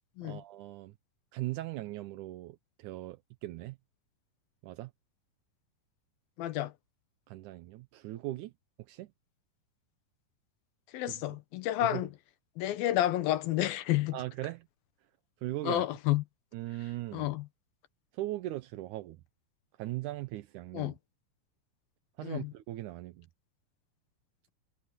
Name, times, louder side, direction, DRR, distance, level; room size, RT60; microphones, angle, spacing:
voice 1, 0.2-0.9 1.3-3.8 4.6-4.9 7.3-8.5 8.9-9.1 11.1-11.2 11.8-12.0 14.1-14.7 15.4-15.8 16.5-17.3 18.1-19.2 19.8-20.9 22.2-23.3, right 16 dB, 75° right, 1.9 m, -39 dB
voice 2, 6.4-6.7 10.9-12.1 12.6-14.2 15.6-16.2 17.1-17.5 20.7-20.9 22.2-22.5, left 14 dB, 80° left, 2.8 m, -30 dB
omnidirectional pair, 4.2 m